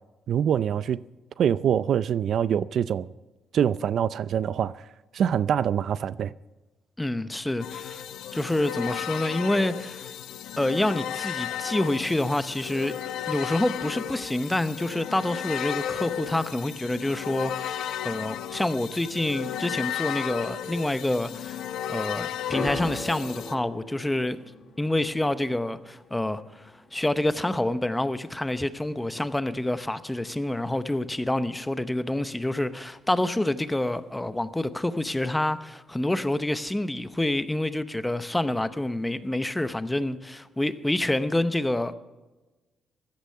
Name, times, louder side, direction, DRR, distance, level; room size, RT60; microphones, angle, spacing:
voice 1, 0.3-1.0 1.4-3.1 3.5-4.7 5.1-6.3, right 8 dB, 65° right, 0.4 m, -24 dB
voice 2, 7.0-8.0 8.3-10.1 10.6-12.9 13.3-21.6 21.9-24.4 24.8-26.4 26.9-41.9, left 1 dB, 10° left, 0.8 m, -27 dB
sound 1, 7.6-23.5, left 10 dB, 85° left, 0.8 m, -34 dB
sound 2, 22.5-28.8 29.1-29.7 30.5-30.6, left 3 dB, 50° left, 3.3 m, -40 dB
16.0 x 12.0 x 5.7 m
cardioid pair, 90°, 0 cm